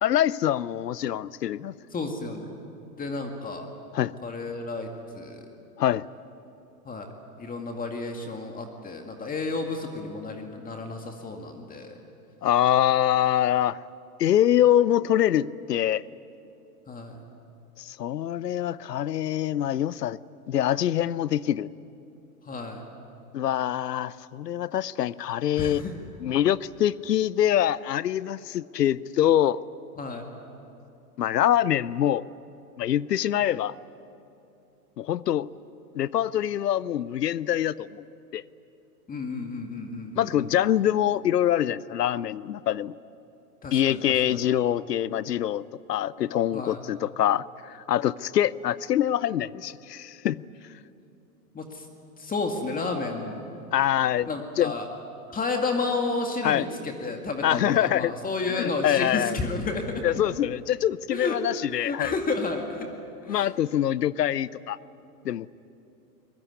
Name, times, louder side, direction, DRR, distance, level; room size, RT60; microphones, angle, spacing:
voice 1, 0.0-1.7 3.9-4.1 5.8-6.1 12.4-13.8 14.2-16.0 17.8-20.2 20.5-21.7 23.3-25.8 26.2-29.6 31.2-32.3 32.8-33.8 35.0-35.5 35.9-38.0 38.3-38.4 40.2-42.9 43.7-45.6 45.9-50.4 53.7-54.3 54.6-54.7 56.4-56.6 57.4-58.1 58.5-59.4 60.0-62.1 63.3-64.8 65.2-65.5, left 11 dB, 90° left, 20 dB, 0.7 m, -24 dB
voice 2, 1.9-2.5 3.0-3.7 4.2-4.9 5.1-5.4 6.9-7.1 7.4-12.0 16.9-17.2 22.5-22.9 25.6-26.0 30.0-30.2 39.1-40.5 43.6-44.0 44.3-44.4 46.5-46.8 51.5-51.9 52.2-53.4 54.3-54.9 55.3-59.9 61.1-61.4 61.7-62.9 63.2-63.5, left 3 dB, 20° left, 3 dB, 2.1 m, -31 dB
22.5 x 21.5 x 9.6 m, 2.7 s
hypercardioid pair, 110°, 47 cm